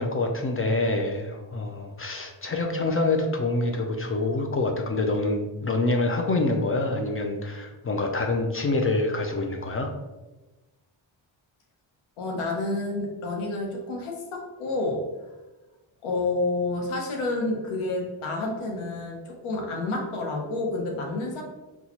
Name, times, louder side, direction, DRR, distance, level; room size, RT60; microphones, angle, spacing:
voice 1, 0.0-9.9, left 2 dB, 30° left, 3 dB, 0.4 m, -26 dB
voice 2, 12.2-15.0 16.0-21.4, left 2 dB, 80° left, 0 dB, 0.9 m, -29 dB
4.1 x 2.3 x 2.8 m, 1.1 s
cardioid pair, 80°, 49 cm